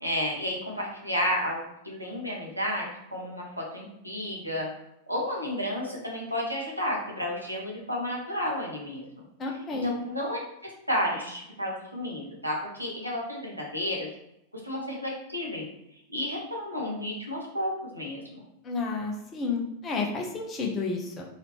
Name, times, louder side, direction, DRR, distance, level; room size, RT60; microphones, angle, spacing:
voice 1, 0.0-4.7 5.1-9.0 9.8-14.1 14.6-15.6 16.1-18.4, left 1 dB, 90° right, -3 dB, 1.0 m, -32 dB
voice 2, 9.4-9.9 18.6-21.2, left 4 dB, 25° left, 1 dB, 0.9 m, -31 dB
4.0 x 2.8 x 3.5 m, 0.82 s
figure-of-eight pair, 90°, 0 cm